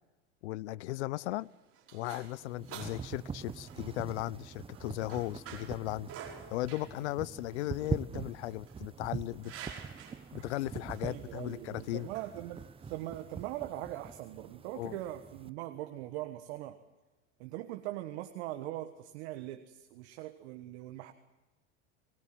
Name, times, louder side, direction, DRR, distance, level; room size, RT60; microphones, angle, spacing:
voice 1, 0.4-1.5 1.9-6.1 6.5-9.5 10.3-12.1 14.8-15.0, left 17 dB, 75° left, 0.7 m, -37 dB
sound 1, 1.1-13.4, right 7 dB, 40° right, 5.5 m, -51 dB
sound 2, 2.2-15.5, right 6 dB, 15° right, 0.9 m, -43 dB
voice 2, 11.0-12.6 12.9-16.8 17.4-21.1, right 15 dB, 65° right, 1.5 m, -41 dB
22.5 x 20.0 x 7.6 m
hypercardioid pair, 105°, 34 cm